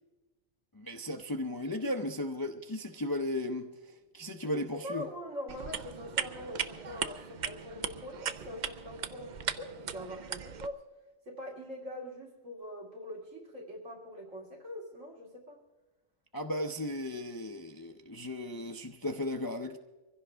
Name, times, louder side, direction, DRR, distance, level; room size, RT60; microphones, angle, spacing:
voice 1, 0.7-5.1 16.3-19.8, left 1 dB, 25° left, 4 dB, 0.5 m, -36 dB
voice 2, 4.4-10.8 11.3-15.6, left 1 dB, 70° right, -1 dB, 2.8 m, -43 dB
sound 1, 5.5-10.7, right 7 dB, 55° right, 0.5 m, -38 dB
24.0 x 15.5 x 3.4 m, 1.1 s
omnidirectional pair, 1.4 m